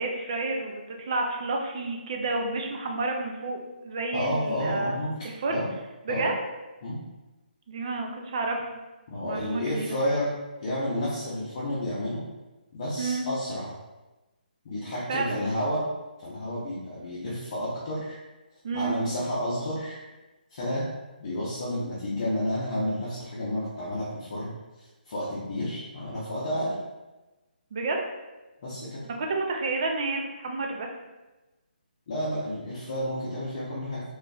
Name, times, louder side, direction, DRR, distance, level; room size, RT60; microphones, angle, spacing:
voice 1, 0.0-3.6 3.8-5.0 5.2-5.6 6.1-6.3 7.7-8.7 9.2-10.0 13.0-13.3 15.1-15.4 18.6-19.0 27.7-28.0 29.2-30.9, right 3 dB, 35° right, 2 dB, 0.5 m, -30 dB
voice 2, 4.1-5.2 5.5-5.7 6.1-6.3 6.8-7.0 9.1-10.3 10.6-12.2 12.7-13.7 14.6-15.9 16.2-18.2 18.7-20.0 20.5-20.9 21.2-24.5 24.8-26.8 28.6-29.1 32.1-34.0, left 1 dB, 35° left, -8 dB, 0.7 m, -30 dB
3.9 x 3.1 x 2.3 m, 1.1 s
hypercardioid pair, 170°, 5 cm